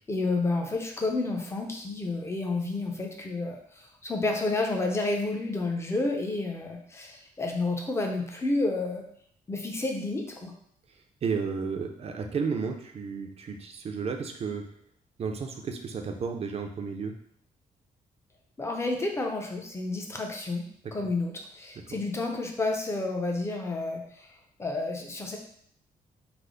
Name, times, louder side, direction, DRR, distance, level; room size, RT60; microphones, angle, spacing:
voice 1, 0.1-9.0 9.5-10.5 18.6-24.3 24.6-25.4, left 2 dB, 15° left, 1 dB, 0.6 m, -30 dB
voice 2, 11.2-14.6 15.2-17.1 21.9-22.0, right 5 dB, 45° right, 4 dB, 0.5 m, -32 dB
3.4 x 2.0 x 3.7 m, 0.66 s
cardioid pair, 115°, 15 cm